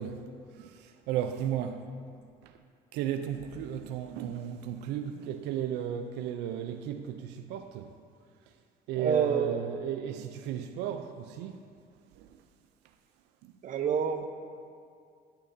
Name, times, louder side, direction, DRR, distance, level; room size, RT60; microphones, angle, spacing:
voice 1, 0.0-1.9 2.4-2.6 2.9-7.9 8.9-11.7 12.1-12.4 13.4-13.5, right 10 dB, 90° right, 0.4 m, -35 dB
voice 2, 9.0-9.6 13.6-14.3, right 7 dB, 50° right, 0.6 m, -27 dB
11.5 x 6.7 x 2.6 m
cardioid pair, 110°, 17 cm